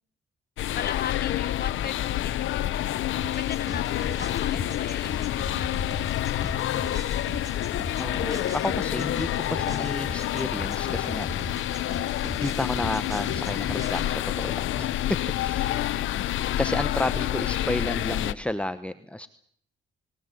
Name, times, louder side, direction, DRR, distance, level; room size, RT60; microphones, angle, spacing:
sound 1, 0.6-18.3, left 12 dB, 80° left, 1.2 m, -28 dB
voice 1, 0.7-6.6 15.6-17.1, left 8 dB, 50° left, 14 dB, 1.5 m, -39 dB
sound 2, 3.2-14.1, equal, 15° right, 4.7 m, -39 dB
voice 2, 8.0-11.7 12.2-15.7 16.6-19.3, left 1 dB, 5° left, 11 dB, 1.1 m, -32 dB
30.0 x 19.5 x 8.1 m, 0.66 s
cardioid pair, 90°, 20 cm